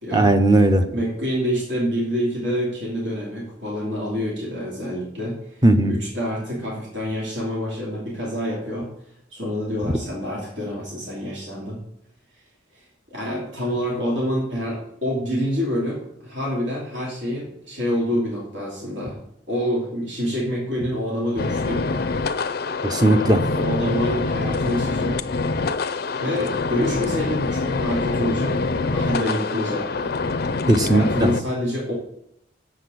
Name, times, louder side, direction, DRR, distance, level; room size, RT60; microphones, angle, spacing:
voice 1, 0.1-0.8 5.6-5.9 22.8-23.4 30.7-31.3, right 1 dB, 20° right, 7 dB, 0.8 m, -17 dB
voice 2, 0.9-8.9 9.3-11.8 13.1-19.2 19.5-22.3 23.6-25.2 26.2-30.2 30.8-31.9, equal, 70° right, -4 dB, 2.8 m, -27 dB
sound 1, 21.4-31.4, left 3 dB, 55° left, 0.5 m, -25 dB
7.4 x 6.5 x 7.8 m, 0.73 s
head